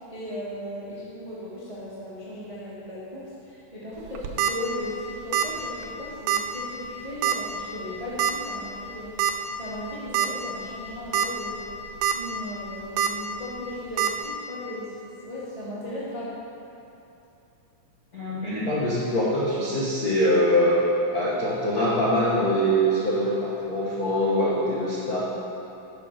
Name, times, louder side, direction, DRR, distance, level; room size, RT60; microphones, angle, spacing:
voice 1, 0.0-11.6 12.0-16.4, left 1 dB, 30° right, -9 dB, 0.6 m, -36 dB
sound 1, 4.1-4.5 5.3-5.6 5.8-5.9 6.3-6.4 7.2-7.5 8.2-8.3 9.2-9.3 9.8-9.9 10.1-10.3 10.9-11.3 11.7-12.1 13.0-13.1 14.0-14.1, right 9 dB, 80° right, 2.2 m, -23 dB
voice 2, 18.1-20.8 21.1-25.2, equal, 75° left, -8 dB, 0.8 m, -23 dB
10.5 x 6.1 x 5.9 m, 2.8 s
omnidirectional pair, 4.1 m